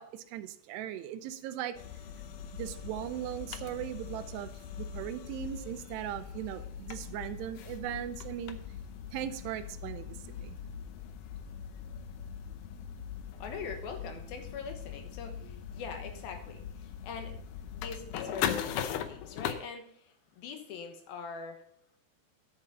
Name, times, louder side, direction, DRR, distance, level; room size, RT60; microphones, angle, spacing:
voice 1, 0.0-1.8 2.5-8.6 9.1-10.5, right 11 dB, 85° right, 11 dB, 2.8 m, -39 dB
sound 1, 1.7-19.5, left 8 dB, 85° left, 1.8 m, -40 dB
voice 2, 13.4-17.4 17.7-21.6, left 5 dB, 70° left, 5 dB, 2.9 m, -42 dB
11.5 x 8.2 x 4.0 m, 0.65 s
omnidirectional pair, 4.8 m